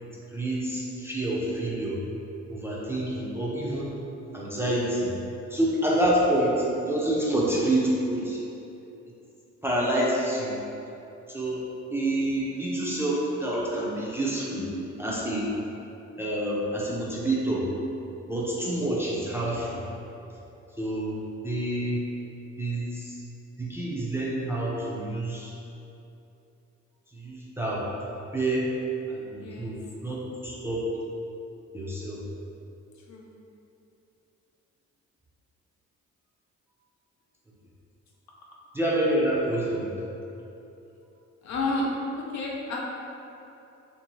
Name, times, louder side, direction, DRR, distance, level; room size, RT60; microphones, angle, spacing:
voice 1, 0.3-2.0 2.5-3.9 4.3-5.1 5.5-8.4 9.6-10.6 11.3-11.7 11.9-14.7 15.0-15.5 16.2-17.7 18.3-19.8 20.8-22.1 22.6-23.2 23.5-25.5 27.1-27.9 28.3-28.7 29.1-30.9 31.7-32.2 38.7-39.9, right 1 dB, 10° right, -6 dB, 0.4 m, -27 dB
voice 2, 29.4-29.7 33.1-33.3 41.4-41.9 42.3-42.8, left 2 dB, 65° left, -2 dB, 0.6 m, -30 dB
2.7 x 2.6 x 3.0 m, 2.9 s
cardioid pair, 90°, 30 cm